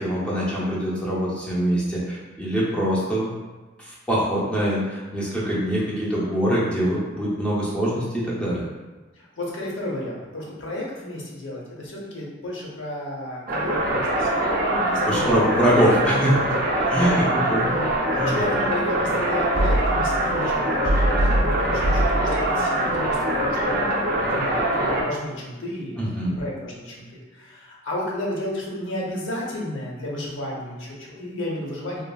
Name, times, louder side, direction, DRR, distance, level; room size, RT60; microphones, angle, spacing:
voice 1, 0.0-3.3 3.8-8.7 15.1-16.3 16.9-17.7 18.1-18.4 26.0-26.3, equal, 5° left, -7 dB, 0.6 m, -23 dB
voice 2, 9.2-14.3 14.7-15.3 16.9-17.2 17.7-32.0, left 1 dB, 70° left, -4 dB, 0.7 m, -33 dB
sound 1, 13.5-25.0, right 1 dB, 45° right, 0.4 m, -22 dB
3.0 x 2.4 x 2.3 m, 1.2 s
head